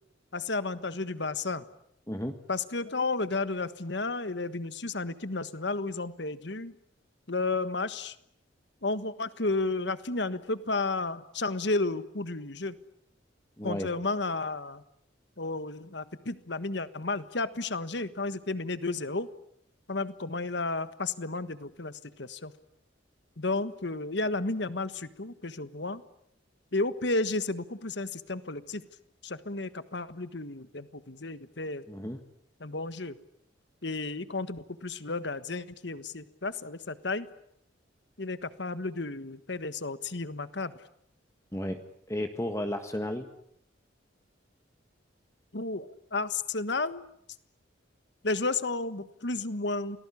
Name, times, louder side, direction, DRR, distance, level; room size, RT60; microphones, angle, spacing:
voice 1, 0.3-1.6 2.5-6.7 7.3-8.1 8.8-12.7 13.6-14.8 15.4-19.3 19.9-22.5 23.4-26.0 26.7-28.8 29.2-31.8 32.6-33.2 33.8-37.3 38.2-40.7 45.5-47.0 48.2-50.0, left 3 dB, 65° left, 13 dB, 1.5 m, -32 dB
voice 2, 13.6-13.9 31.9-32.2 41.5-41.8 42.1-43.2, left 1 dB, 15° left, 6 dB, 1.6 m, -33 dB
29.0 x 19.5 x 9.9 m, 0.73 s
head